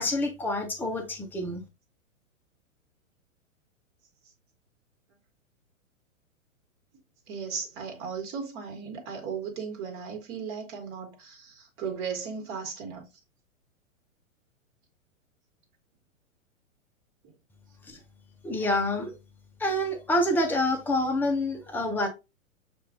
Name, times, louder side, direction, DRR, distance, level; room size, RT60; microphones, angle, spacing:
voice 1, 0.0-1.6 17.9-18.0 18.4-19.1 19.6-22.1, left 1 dB, 5° left, 0.5 m, -27 dB
voice 2, 7.3-13.1, right 6 dB, 35° right, 1.5 m, -36 dB
6.4 x 2.5 x 2.5 m
figure-of-eight pair, 110°, 41 cm